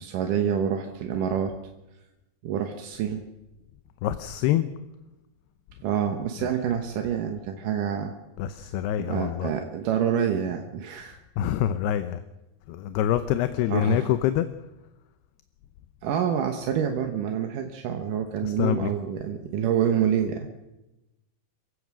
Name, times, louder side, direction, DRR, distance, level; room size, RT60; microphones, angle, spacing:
voice 1, 0.0-1.5 2.4-3.3 5.8-8.1 9.0-11.2 13.7-14.1 16.0-20.5, right 8 dB, 65° right, 4 dB, 2.3 m, -27 dB
voice 2, 4.0-4.7 6.4-6.5 8.4-9.5 11.4-12.2 12.7-14.5 18.4-18.9, left 11 dB, 80° left, 11 dB, 2.7 m, -25 dB
27.5 x 16.0 x 6.3 m, 0.99 s
omnidirectional pair, 4.9 m